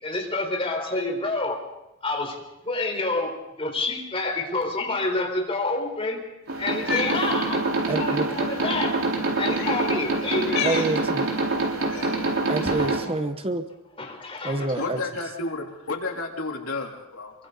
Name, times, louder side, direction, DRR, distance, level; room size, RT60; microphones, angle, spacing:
voice 1, 0.0-1.6 2.0-2.4 2.6-6.2 6.6-7.6 7.9-9.0 9.4-10.6 12.2-12.3 12.6-12.9 14.0-14.7, left 2 dB, 25° left, 1 dB, 4.3 m, -28 dB
sound 1, 6.5-13.0, right 2 dB, 70° right, 4.2 m, -25 dB
Cat, 6.7-7.2 8.2-8.4 9.5-9.8 10.4-10.9 11.9-12.2, left 7 dB, 55° left, 5.2 m, -30 dB
voice 2, 7.9-8.3 10.6-11.2 12.5-13.6 14.4-14.8, right 2 dB, 25° right, 8 dB, 1.0 m, -27 dB
voice 3, 14.7-17.3, left 3 dB, 85° left, 1 dB, 3.4 m, -31 dB
27.5 x 23.5 x 4.1 m, 0.91 s
head